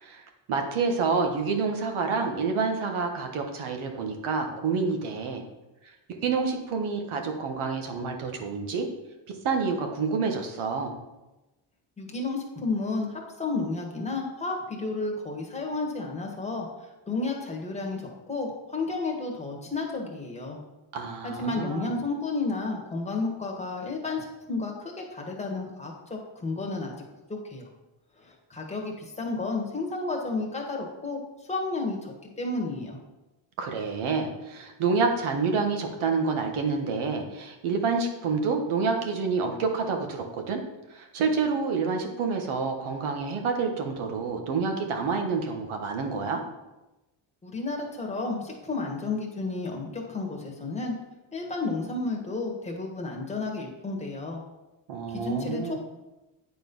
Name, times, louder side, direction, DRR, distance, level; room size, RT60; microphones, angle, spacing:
voice 1, 0.5-5.4 6.2-8.9 9.4-10.9 20.9-21.9 33.6-40.6 40.9-46.4 54.9-55.8, right 4 dB, 75° right, 4 dB, 1.5 m, -28 dB
voice 2, 12.0-16.7 17.1-20.6 21.2-26.9 27.3-27.7 28.2-31.2 31.5-33.0 47.4-50.9 51.3-54.4 55.1-55.8, left 3 dB, 15° left, -1 dB, 1.5 m, -32 dB
9.3 x 4.3 x 5.4 m, 1.0 s
cardioid pair, 145°, 50 cm